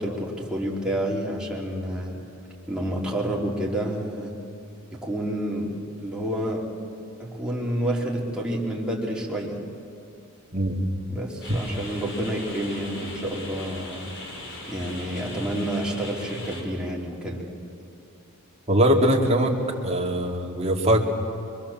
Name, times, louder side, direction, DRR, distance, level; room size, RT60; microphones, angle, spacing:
voice 1, 0.0-2.2 2.7-4.3 4.9-5.7 6.0-6.6 7.2-9.6 11.1-14.1 14.7-17.4, right 1 dB, 5° right, -4 dB, 3.5 m, -29 dB
sound 1, 11.4-16.6, left 1 dB, 60° left, 4.2 m, -39 dB
voice 2, 18.7-19.6 19.8-21.0, equal, 30° right, 0 dB, 2.6 m, -21 dB
25.0 x 23.5 x 7.4 m, 2.5 s
head